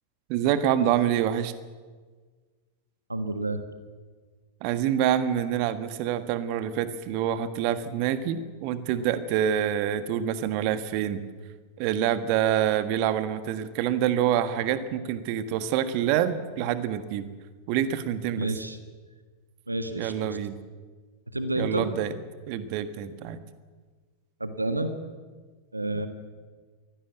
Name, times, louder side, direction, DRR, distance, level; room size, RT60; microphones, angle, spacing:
voice 1, 0.3-1.5 4.6-11.2 11.8-17.2 17.7-18.5 20.0-20.5 21.6-22.1 22.5-23.4 25.9-26.0, right 10 dB, 45° right, 11 dB, 1.5 m, -26 dB
voice 2, 3.1-3.6 18.4-18.8 19.7-20.4 21.3-21.9 24.4-24.9 25.7-26.1, right 2 dB, 85° right, 8 dB, 1.5 m, -29 dB
23.5 x 16.5 x 8.3 m, 1.5 s
figure-of-eight pair, 90°, 0 cm